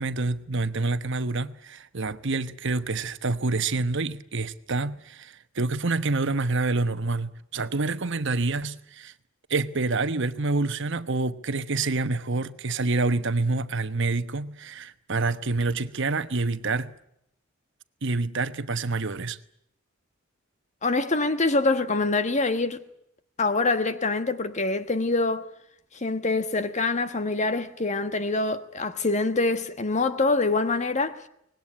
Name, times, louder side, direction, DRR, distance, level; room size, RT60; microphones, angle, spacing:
voice 1, 0.0-9.1 9.5-16.9 18.0-19.4, right 3 dB, 65° right, 1.1 m, -27 dB
voice 2, 20.8-22.8 23.4-25.5 25.9-31.2, left 3 dB, 35° left, 1.4 m, -25 dB
24.5 x 20.0 x 10.0 m
head